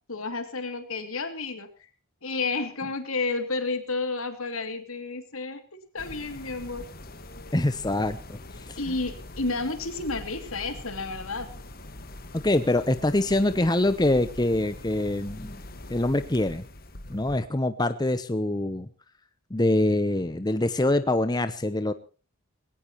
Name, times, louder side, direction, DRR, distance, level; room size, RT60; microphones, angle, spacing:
voice 1, 0.1-1.7 2.2-6.9 8.8-11.5, left 3 dB, 70° left, 8 dB, 2.8 m, -31 dB
sound 1, 6.0-17.4, left 1 dB, 45° left, 1.7 m, -43 dB
voice 2, 7.5-8.8 12.3-15.6 15.9-16.6 17.1-18.9 19.5-21.9, left 1 dB, 20° left, 11 dB, 0.8 m, -25 dB
20.5 x 17.5 x 3.1 m, 0.36 s
head